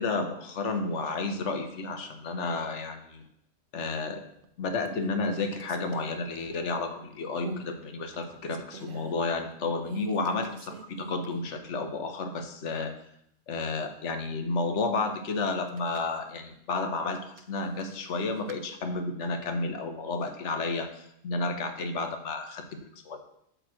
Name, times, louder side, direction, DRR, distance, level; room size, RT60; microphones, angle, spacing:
voice 1, 0.0-3.2 3.7-4.2 4.6-12.9 13.5-22.6 23.0-23.2, left 3 dB, 75° left, 6 dB, 1.1 m, -31 dB
sound 1, 4.1-4.5 4.8-7.0 7.4-7.7 8.1-9.1 9.8-11.6 11.9-12.0 15.5-16.2 17.1-18.6, right 3 dB, 60° right, 0.6 m, -45 dB
8.0 x 3.1 x 6.1 m, 0.73 s
omnidirectional pair, 1.2 m